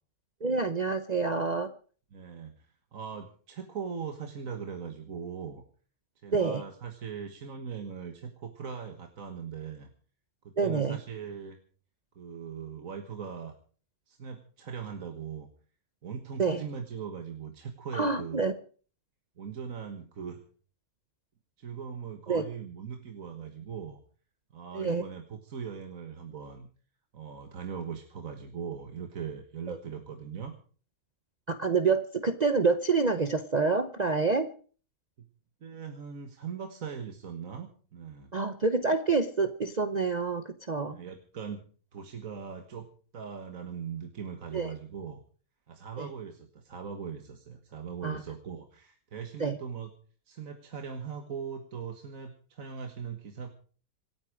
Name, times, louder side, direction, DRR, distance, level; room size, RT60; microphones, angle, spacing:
voice 1, 0.4-1.7 6.3-6.6 10.6-11.0 16.4-16.6 17.9-18.5 22.3-22.4 24.7-25.0 29.7-29.8 31.5-34.5 38.3-41.0 44.5-44.7 46.0-46.1 48.0-48.2 49.4-49.6, right 4 dB, 35° right, 8 dB, 0.9 m, -27 dB
voice 2, 2.1-5.6 6.2-9.9 10.4-11.6 12.2-13.5 14.1-15.5 16.0-18.4 19.4-20.4 21.6-24.0 24.5-26.7 27.1-30.5 35.2-35.3 35.6-38.3 40.9-41.6 41.9-42.9 43.1-45.2 45.7-49.9 50.3-53.5, right 7 dB, 65° right, 5 dB, 1.9 m, -40 dB
26.5 x 9.3 x 4.9 m, 0.42 s
omnidirectional pair, 1.5 m